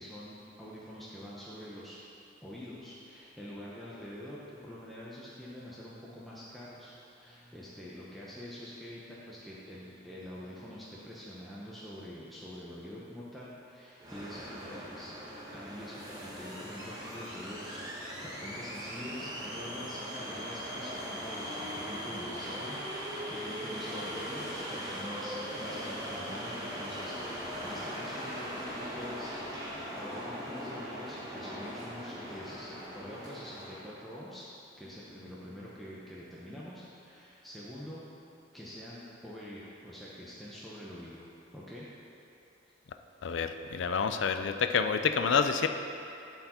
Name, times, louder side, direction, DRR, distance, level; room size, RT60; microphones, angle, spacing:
voice 1, 0.0-2.0 2.4-15.1 15.5-29.3 29.9-34.4 34.8-38.1 38.5-41.9, left 1 dB, ahead, -8 dB, 0.7 m, -45 dB
sound 1, 14.0-33.9, equal, 20° right, 1.1 m, -40 dB
voice 2, 43.2-45.7, left 6 dB, 65° left, 8 dB, 0.4 m, -28 dB
11.0 x 4.7 x 4.3 m, 2.7 s
head